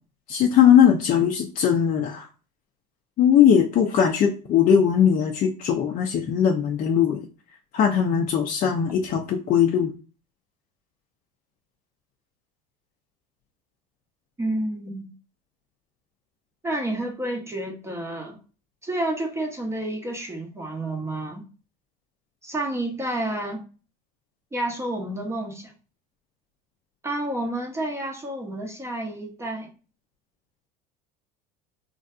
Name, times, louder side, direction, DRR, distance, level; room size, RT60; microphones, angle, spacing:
voice 1, 0.3-2.3 3.2-7.2 7.7-9.9, left 8 dB, 40° left, 0.5 m, -19 dB
voice 2, 14.4-15.1 16.6-18.4 18.8-21.4 22.4-23.6 24.5-25.7 27.0-29.7, right 1 dB, 15° right, 0.6 m, -30 dB
3.3 x 2.6 x 2.3 m
supercardioid pair, 100°, 20 cm